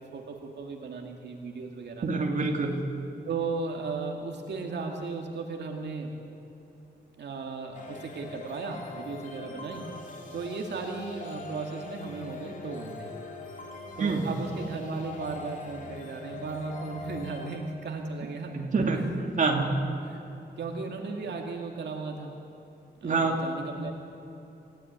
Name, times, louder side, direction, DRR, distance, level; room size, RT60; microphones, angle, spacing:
voice 1, 0.0-2.1 3.3-6.1 7.2-9.9 10.3-13.1 14.0-18.6 18.9-19.0 19.6-20.2 20.6-22.3 23.0-23.9, right 4 dB, 75° right, 1 dB, 2.3 m, -36 dB
voice 2, 2.0-2.8 14.0-14.2 18.5-19.0 19.4-19.7 23.0-23.4, right 4 dB, 45° right, 1 dB, 2.9 m, -26 dB
sound 1, 7.7-17.6, left 3 dB, 45° left, 3.5 m, -43 dB
28.5 x 16.0 x 9.5 m, 2.9 s
wide cardioid pair, 160°, 18 cm